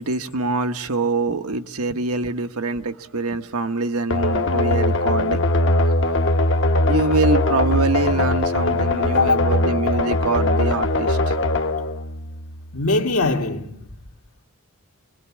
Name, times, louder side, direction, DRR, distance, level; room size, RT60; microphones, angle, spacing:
voice 1, 0.0-5.4 6.9-11.3, right 3 dB, 80° right, 1.2 m, -24 dB
sound 1, 4.1-12.8, left 2 dB, 60° left, 1.1 m, -21 dB
voice 2, 12.7-13.9, left 3 dB, 80° left, 2.0 m, -21 dB
26.5 x 21.5 x 8.5 m
head